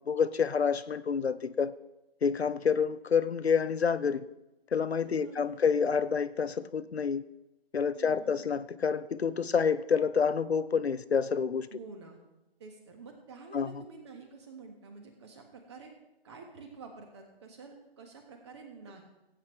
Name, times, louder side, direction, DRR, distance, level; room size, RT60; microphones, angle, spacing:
voice 1, 0.1-1.7 2.2-4.3 4.7-7.2 7.7-11.7 13.5-13.7, left 6 dB, 80° left, 14 dB, 0.6 m, -28 dB
voice 2, 5.0-5.6 7.9-8.5 11.7-12.2 12.6-15.9 16.2-19.0, right 4 dB, 25° right, 4 dB, 1.6 m, -49 dB
17.0 x 8.4 x 3.2 m, 0.94 s
figure-of-eight pair, 150°, 31 cm